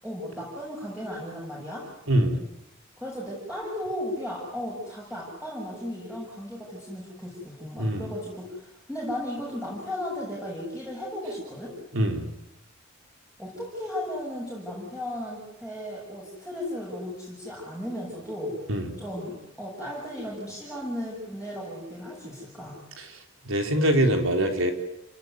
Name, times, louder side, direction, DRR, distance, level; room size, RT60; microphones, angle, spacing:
voice 1, 0.0-1.9 3.0-11.7 13.4-18.6 19.0-22.8, left 1 dB, 5° right, -5 dB, 7.3 m, -35 dB
voice 2, 2.1-2.4 7.8-8.1 11.9-12.3 18.7-18.9 23.0-23.1 23.4-24.7, right 1 dB, 75° right, 5 dB, 4.0 m, -23 dB
29.0 x 19.0 x 9.5 m, 0.84 s
head